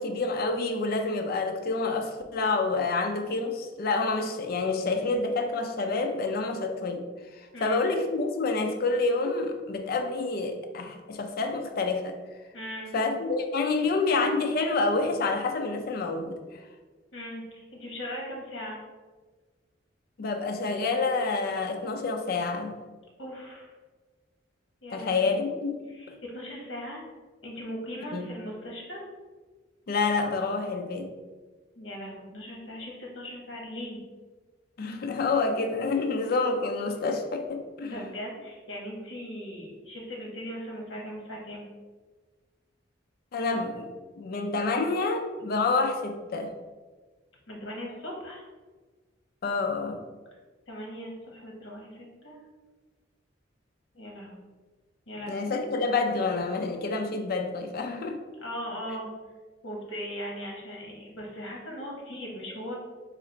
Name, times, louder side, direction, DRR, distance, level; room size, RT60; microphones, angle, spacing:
voice 1, 0.0-7.0 7.6-12.2 12.9-16.4 20.2-22.8 24.9-25.9 28.1-28.3 29.9-31.1 34.8-37.9 43.3-46.5 49.4-50.0 55.3-58.2, left 3 dB, 50° left, 0.4 m, -28 dB
voice 2, 7.5-7.8 12.5-12.9 17.1-18.8 23.2-23.7 24.8-25.4 25.9-27.0 27.4-29.1 31.8-34.0 37.8-41.7 47.5-48.5 50.7-52.4 53.9-54.4 55.1-55.5 58.4-59.1 59.6-62.8, equal, 80° left, 1.0 m, -39 dB
3.1 x 2.4 x 3.9 m
head